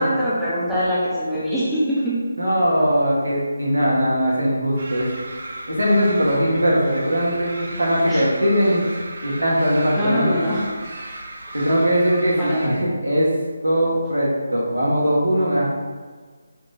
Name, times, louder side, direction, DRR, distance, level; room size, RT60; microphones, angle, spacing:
voice 1, 0.0-2.2 8.1-8.3 9.9-10.6 12.4-12.8, equal, 5° right, -12 dB, 0.9 m, -23 dB
voice 2, 2.4-5.1 5.6-8.8 9.2-10.3 11.5-13.3 13.6-15.7, equal, 85° right, -4 dB, 1.4 m, -20 dB
sound 1, 4.8-12.7, right 2 dB, 55° right, 0.6 m, -35 dB
4.5 x 2.6 x 3.9 m, 1.5 s
figure-of-eight pair, 155°, 0 cm